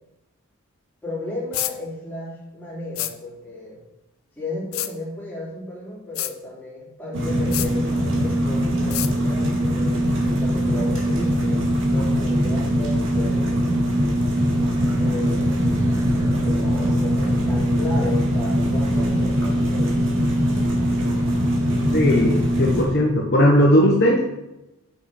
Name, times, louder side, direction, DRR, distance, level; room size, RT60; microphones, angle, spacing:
voice 1, 1.0-3.8 4.4-11.6 11.9-13.8 15.0-15.8 16.4-20.0, left 1 dB, 10° left, -7 dB, 3.0 m, -34 dB
sound 1, 1.5-1.7 3.0-3.1 4.7-4.9 6.2-6.3 7.5-7.7 8.9-9.1, left 15 dB, 75° left, 0.5 m, -27 dB
sound 2, 7.1-22.8, equal, 65° right, 1.9 m, -21 dB
sound 3, 14.7-18.2, right 1 dB, 15° right, 0.7 m, -33 dB
voice 2, 21.9-24.2, equal, 50° left, -1 dB, 1.0 m, -17 dB
6.4 x 5.8 x 4.9 m, 0.95 s
head